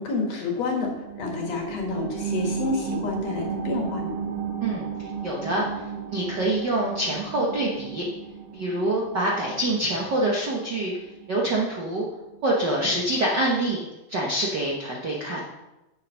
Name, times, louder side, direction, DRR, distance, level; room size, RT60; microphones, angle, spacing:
voice 1, 0.0-4.1, left 3 dB, 60° left, 0 dB, 2.5 m, -29 dB
sound 1, 0.8-11.9 12.3-12.4, right 6 dB, 75° right, 2.2 m, -34 dB
voice 2, 4.6-5.6 6.1-8.1 8.5-10.9 11.3-12.1 12.4-13.8 14.1-15.4, right 1 dB, 55° right, -3 dB, 1.2 m, -25 dB
7.8 x 7.3 x 5.4 m, 1.0 s
omnidirectional pair, 3.7 m